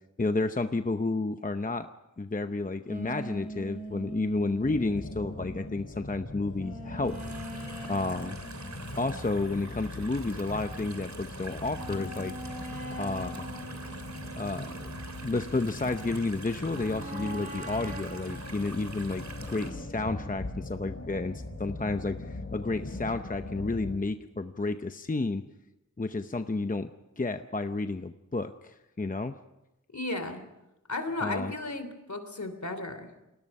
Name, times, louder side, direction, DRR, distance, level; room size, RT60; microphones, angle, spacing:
voice 1, 0.2-1.9 2.2-7.2 7.8-8.4 8.9-12.3 12.9-13.5 14.4-14.9 15.2-25.4 26.0-26.9 27.2-29.3 31.2-31.5, left 3 dB, 25° left, 8 dB, 0.8 m, -31 dB
sound 1, 2.9-10.6 11.0-11.1 11.7-16.2 16.7-20.2, right 1 dB, 25° right, 6.2 m, -43 dB
sound 2, 4.6-24.0, left 2 dB, 45° left, 4.3 m, -41 dB
sound 3, 7.0-19.7, right 3 dB, 60° right, 2.9 m, -46 dB
voice 2, 29.9-30.4 30.9-33.1, left 2 dB, 60° left, 9 dB, 3.2 m, -34 dB
29.0 x 20.0 x 5.5 m, 0.98 s
wide cardioid pair, 75°, 31 cm